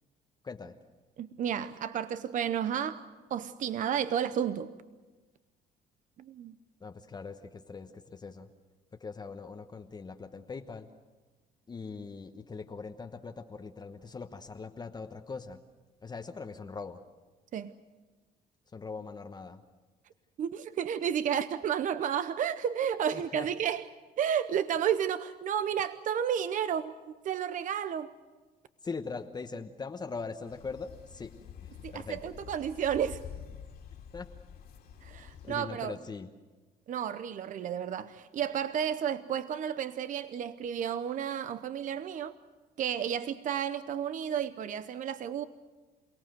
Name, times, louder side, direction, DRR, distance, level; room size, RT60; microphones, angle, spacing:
voice 1, 0.4-0.7 6.8-8.5 8.9-10.9 11.7-15.6 16.0-17.0 18.7-19.6 23.1-23.5 28.8-31.3 31.6-32.2 34.1-34.3 35.4-36.3, left 4 dB, 25° left, 5 dB, 1.1 m, -41 dB
voice 2, 1.2-3.0 3.3-4.7 6.3-6.6 17.5-17.7 20.4-23.9 24.2-26.9 27.2-28.1 31.8-33.2 35.0-35.9 36.9-42.3 42.8-45.4, right 9 dB, 50° right, 13 dB, 0.8 m, -32 dB
sound 1, 30.4-35.6, left 8 dB, 65° left, 2.9 m, -48 dB
28.5 x 17.5 x 7.9 m, 1.3 s
cardioid pair, 110°, 17 cm